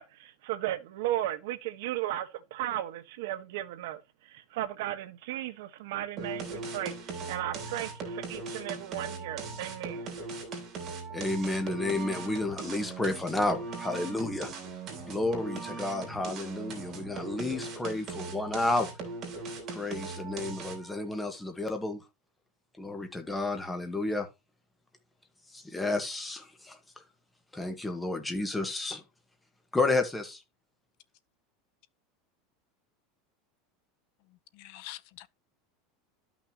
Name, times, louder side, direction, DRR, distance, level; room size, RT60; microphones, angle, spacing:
voice 1, 0.0-10.1, right 13 dB, 70° right, 1.4 m, -35 dB
sound 1, 6.2-21.0, right 4 dB, 30° right, 3.2 m, -39 dB
voice 2, 11.1-14.5 15.1-18.9 19.7-22.0 22.8-24.3 25.5-26.8 27.5-29.0 29.7-30.4, left 2 dB, 5° left, 1.5 m, -31 dB
voice 3, 34.5-35.3, left 16 dB, 55° left, 0.7 m, -45 dB
12.5 x 5.9 x 3.0 m
supercardioid pair, 170°, 0 cm